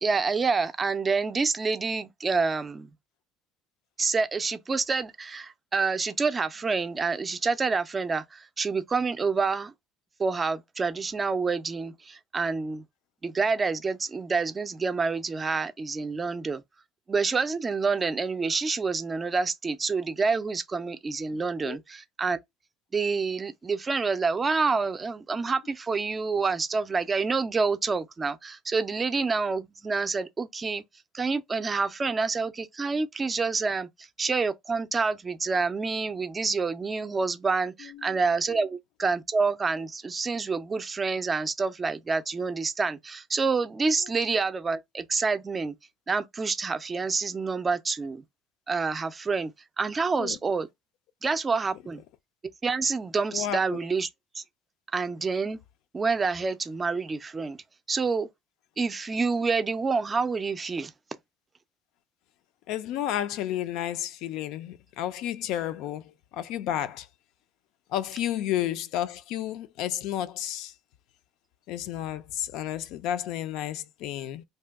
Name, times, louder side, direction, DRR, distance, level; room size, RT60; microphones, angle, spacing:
voice 1, 0.0-2.9 4.0-9.7 10.2-12.8 13.2-16.6 17.1-22.4 22.9-30.8 31.1-33.9 34.2-45.7 46.1-48.2 48.7-49.5 49.8-50.7 51.2-52.0 52.6-54.1 54.4-54.5 54.9-55.6 55.9-57.6 57.9-58.3 58.8-60.9, right 4 dB, 20° right, 0.4 m, -27 dB
voice 2, 53.3-53.8 62.7-67.1 67.9-70.7 71.7-74.4, left 11 dB, 70° left, 0.3 m, -32 dB
2.7 x 2.2 x 3.4 m
cardioid pair, 115°, 0 cm